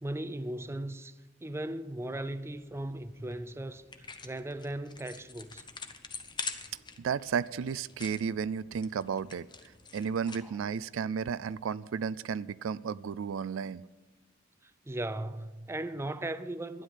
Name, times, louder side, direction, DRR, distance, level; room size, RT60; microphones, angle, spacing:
voice 1, 0.0-5.6 10.4-10.5 14.6-16.8, right 1 dB, 15° right, 0.5 m, -38 dB
sound 1, 2.5-10.7, left 4 dB, 25° left, 0.9 m, -46 dB
voice 2, 7.0-9.5 9.9-13.8, right 6 dB, 80° right, 0.4 m, -33 dB
12.5 x 10.0 x 6.5 m
head